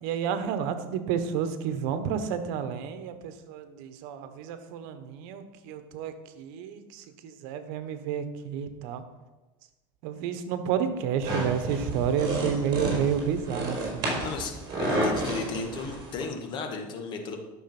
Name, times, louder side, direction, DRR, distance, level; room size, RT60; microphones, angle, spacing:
voice 1, 0.0-9.0 10.0-14.2, right 8 dB, 75° right, 10 dB, 1.2 m, -30 dB
sound 1, 11.2-16.2, right 1 dB, 40° right, 4.5 m, -31 dB
voice 2, 14.2-17.4, left 4 dB, 45° left, 4 dB, 1.9 m, -35 dB
12.5 x 6.5 x 6.0 m, 1.1 s
cardioid pair, 145°, 11 cm